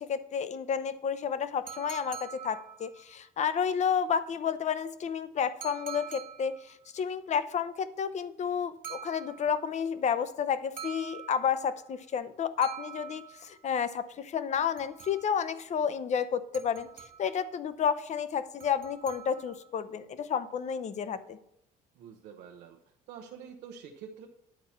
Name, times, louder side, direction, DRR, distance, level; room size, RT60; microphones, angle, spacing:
voice 1, 0.0-21.4, left 7 dB, 45° left, 13 dB, 0.7 m, -31 dB
sound 1, 1.7-3.1 5.6-6.8 8.8-9.7 10.8-11.8 12.6-13.6 14.5-15.5 16.5-17.5 18.6-19.7, right 8 dB, 50° right, 1.9 m, -45 dB
voice 2, 22.0-22.8 23.1-24.3, right 7 dB, 85° right, 2 dB, 0.8 m, -46 dB
10.0 x 4.2 x 7.2 m, 0.77 s
cardioid pair, 110°, 17 cm